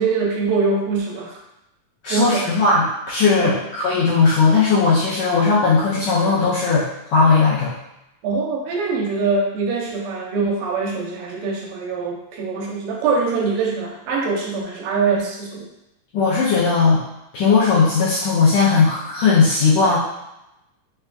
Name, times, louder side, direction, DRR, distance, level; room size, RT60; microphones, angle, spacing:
voice 1, 0.0-1.4 2.1-2.5 3.4-3.6 8.2-15.7, right 4 dB, 90° right, -2 dB, 2.5 m, -23 dB
voice 2, 2.0-7.7 16.1-17.0 17.3-20.0, left 4 dB, 80° left, -8 dB, 1.6 m, -17 dB
5.7 x 3.4 x 2.4 m, 0.89 s
omnidirectional pair, 3.9 m